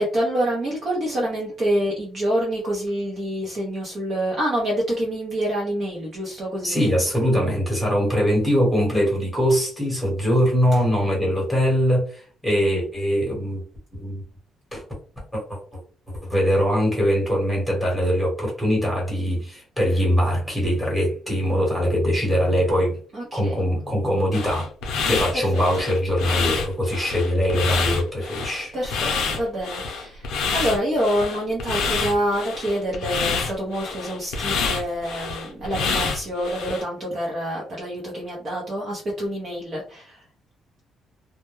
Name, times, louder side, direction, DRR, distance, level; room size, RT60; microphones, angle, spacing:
voice 1, 0.0-6.9 10.7-10.8 23.1-23.6 25.3-25.6 28.7-40.2, equal, 40° right, 0.6 m, -26 dB
voice 2, 6.6-13.6 14.0-14.2 14.7-14.8 15.3-15.6 16.2-23.0 23.3-24.7 25.1-28.8, equal, 5° left, 1.0 m, -22 dB
sound 1, 24.3-36.8, left 5 dB, 85° left, 0.5 m, -27 dB
2.1 x 2.1 x 3.0 m
cardioid pair, 150°, 0 cm